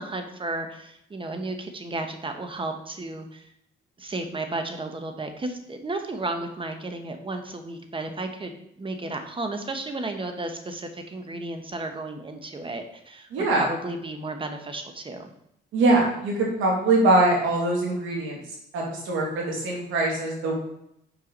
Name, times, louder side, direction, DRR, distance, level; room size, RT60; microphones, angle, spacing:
voice 1, 0.0-3.5 4.0-8.5 8.8-15.3, right 2 dB, 25° right, 6 dB, 1.1 m, -33 dB
voice 2, 13.3-13.7 15.7-18.4 18.7-20.6, right 2 dB, 90° right, -2 dB, 2.4 m, -22 dB
6.0 x 4.7 x 5.3 m, 0.78 s
cardioid pair, 90°, 20 cm